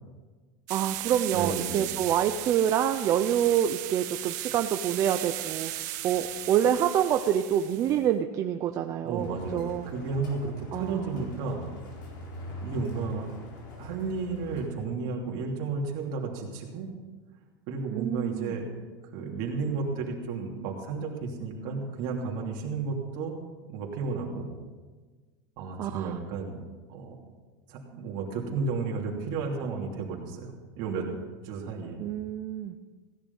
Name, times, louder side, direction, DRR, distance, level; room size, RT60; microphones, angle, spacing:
voice 1, 0.7-9.9 10.7-11.1 17.9-18.5 25.8-26.2 32.0-32.8, right 10 dB, 30° right, 6 dB, 0.6 m, -27 dB
sound 1, 0.7-8.0, right 15 dB, 65° right, 1.1 m, -36 dB
voice 2, 1.3-1.9 9.0-11.6 12.6-13.3 13.8-16.9 17.7-18.7 19.1-23.4 23.7-24.6 25.6-26.6 26.9-27.2 27.7-31.1 31.4-32.0, right 4 dB, 50° right, 0 dB, 2.9 m, -33 dB
sound 2, 9.2-14.7, left 2 dB, 90° left, 4.3 m, -42 dB
16.5 x 10.5 x 5.5 m, 1.4 s
supercardioid pair, 155°, 10 cm